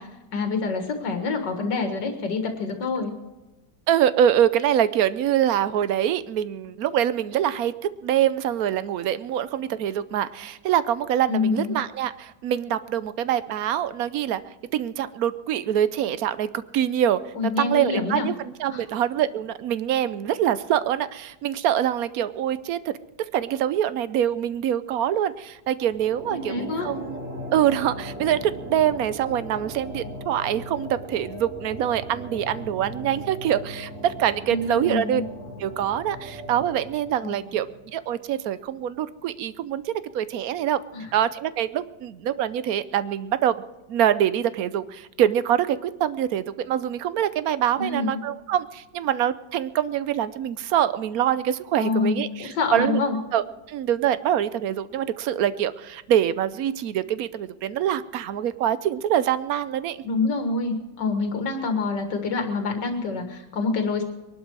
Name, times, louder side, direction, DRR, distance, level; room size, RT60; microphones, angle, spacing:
voice 1, 0.0-3.1 11.3-11.8 17.4-18.3 18.7-18.8 26.3-26.9 34.5-35.2 37.2-37.4 40.9-41.1 47.8-48.2 51.8-53.2 60.0-64.0, left 4 dB, 90° left, 5 dB, 2.3 m, -26 dB
voice 2, 3.9-7.7 8.0-14.4 14.7-17.2 17.6-22.9 23.3-27.2 27.5-35.2 35.6-40.8 41.1-43.6 43.9-53.0 53.3-60.0, right 10 dB, 65° right, 15 dB, 1.0 m, -24 dB
sound 1, 25.9-38.4, equal, 45° right, 3.3 m, -38 dB
22.5 x 11.5 x 4.7 m, 1.1 s
omnidirectional pair, 1.8 m